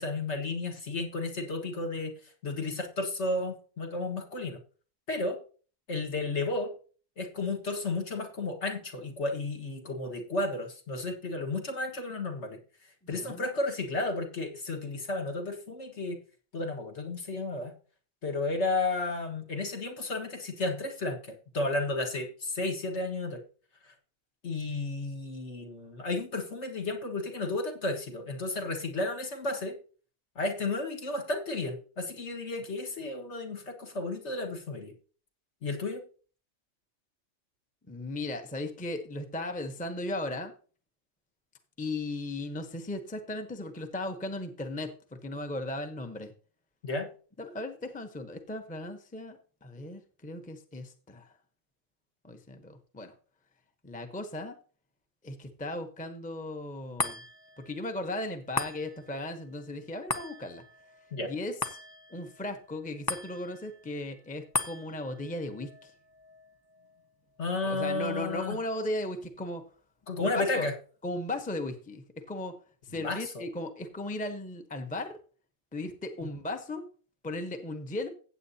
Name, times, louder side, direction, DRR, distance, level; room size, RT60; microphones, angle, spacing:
voice 1, 0.0-2.1 2.4-4.6 5.1-5.4 5.9-6.7 7.2-12.6 13.1-16.2 16.5-17.7 18.2-23.4 23.8-23.9 24.4-29.8 30.4-34.9 35.6-36.0 46.8-47.1 61.1-61.3 67.4-68.6 70.1-70.7 73.0-73.4, left 2 dB, 55° left, 3 dB, 1.8 m, -33 dB
voice 2, 13.1-13.4 37.9-40.5 41.8-46.3 47.4-51.3 52.2-53.1 53.8-54.5 55.2-57.2 57.6-60.6 61.3-61.5 62.1-65.9 67.6-69.6 70.3-70.7 71.0-72.5 72.8-75.2 75.7-76.9 77.2-78.1, left 2 dB, 5° left, 6 dB, 0.8 m, -36 dB
sound 1, 57.0-69.6 70.0-70.1, left 3 dB, 30° left, 0.4 m, -40 dB
15.0 x 8.4 x 2.8 m, 0.40 s
omnidirectional pair, 1.4 m